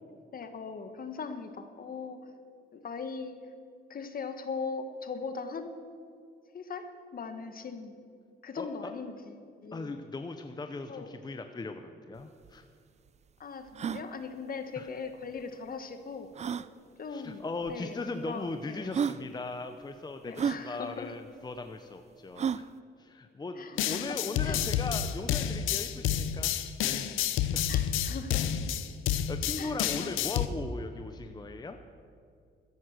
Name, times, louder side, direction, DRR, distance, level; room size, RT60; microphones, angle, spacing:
voice 1, 0.3-2.2 2.7-3.4 3.9-5.7 6.5-8.0 8.4-9.3 9.6-9.9 10.9-11.1 13.4-16.3 17.0-17.4 17.7-18.9 20.2-21.1 23.6-24.2 24.4-24.6 27.7-28.5 29.6-30.1, left 5 dB, 45° left, 8 dB, 1.4 m, -39 dB
voice 2, 8.6-8.9 9.7-12.7 14.7-14.9 17.1-22.7 23.0-26.5 26.8-27.1 27.5-27.7 29.1-31.8, left 3 dB, 20° left, 7 dB, 0.8 m, -38 dB
sound 1, 12.2-12.3 12.4-12.5 13.1-13.2 13.7-14.0 15.4-15.5 16.3-16.7 17.7-17.8 18.5-18.6 18.9-19.2 20.3-20.6 22.4-22.7, right 7 dB, 35° right, 0.4 m, -31 dB
sound 2, 23.8-30.5, left 10 dB, 90° left, 0.7 m, -29 dB
14.0 x 11.0 x 6.6 m, 2.3 s
cardioid pair, 90°, 20 cm